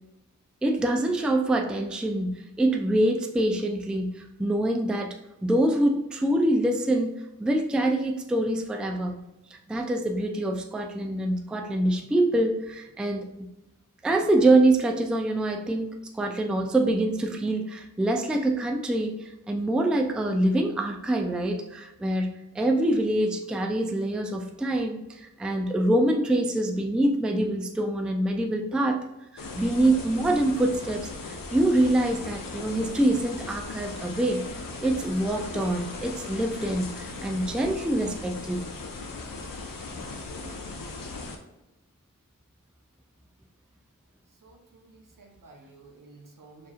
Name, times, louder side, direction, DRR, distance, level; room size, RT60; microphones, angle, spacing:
voice 1, 0.6-9.2 9.7-13.5 14.0-29.0 29.3-34.4 34.8-38.7, right 1 dB, 5° right, 3 dB, 0.3 m, -25 dB
sound 1, 29.4-41.4, left 3 dB, 90° left, 0.6 m, -38 dB
voice 2, 44.4-46.7, right 3 dB, 75° right, 1 dB, 0.9 m, -52 dB
4.6 x 3.0 x 2.4 m, 0.94 s
wide cardioid pair, 80°, 33 cm